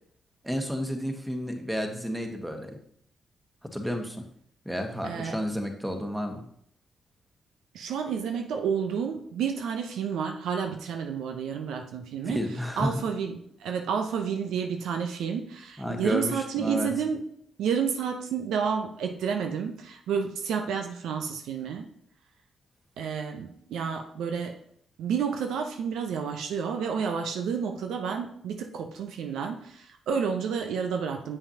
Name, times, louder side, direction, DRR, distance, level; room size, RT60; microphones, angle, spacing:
voice 1, 0.4-2.8 3.6-4.3 4.6-6.4 12.3-13.0 15.8-16.9, equal, 10° right, 4 dB, 1.4 m, -31 dB
voice 2, 5.0-5.4 7.7-12.4 12.8-17.2 17.6-21.9 23.0-24.6 25.0-31.4, right 6 dB, 75° right, 4 dB, 0.6 m, -30 dB
8.0 x 5.7 x 2.8 m, 0.67 s
hypercardioid pair, 45°, 0 cm